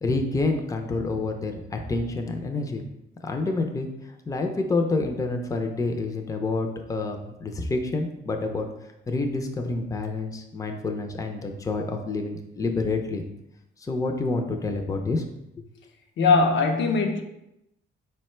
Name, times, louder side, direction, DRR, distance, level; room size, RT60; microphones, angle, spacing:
voice 1, 0.0-2.8 3.2-3.9 4.3-8.7 9.1-13.2 13.8-15.2, left 3 dB, 15° left, 0.5 m, -28 dB
voice 2, 16.2-17.2, left 4 dB, 70° left, 0.6 m, -20 dB
4.3 x 2.2 x 4.3 m
cardioid pair, 90°, 20 cm